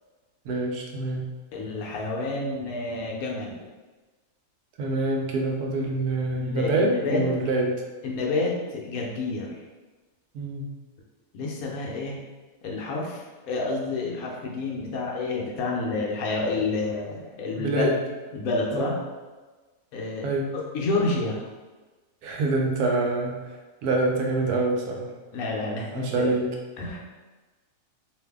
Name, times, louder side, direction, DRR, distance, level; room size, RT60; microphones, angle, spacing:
voice 1, 0.4-1.3 4.8-7.8 10.3-10.7 17.6-18.0 18.7-18.9 20.2-20.6 22.2-23.4 23.8-25.1 25.9-26.5, right 2 dB, 80° right, 0 dB, 1.1 m, -26 dB
voice 2, 1.5-3.6 6.4-7.2 8.0-9.6 11.3-12.2 12.6-17.9 18.3-19.0 19.9-20.3 20.7-21.4 25.3-26.3 26.8-27.0, left 3 dB, 70° left, -2 dB, 1.1 m, -29 dB
2.6 x 2.6 x 3.4 m, 1.3 s
omnidirectional pair, 1.6 m